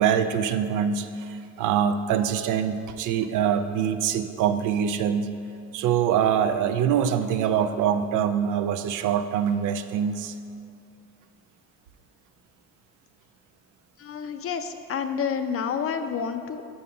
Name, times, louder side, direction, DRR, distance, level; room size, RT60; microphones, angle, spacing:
voice 1, 0.0-5.3 5.7-10.3, right 8 dB, 85° right, 10 dB, 0.5 m, -24 dB
voice 2, 14.0-16.7, left 6 dB, 50° left, 8 dB, 0.5 m, -29 dB
5.6 x 5.4 x 5.5 m, 2.4 s
cardioid pair, 90°, 30 cm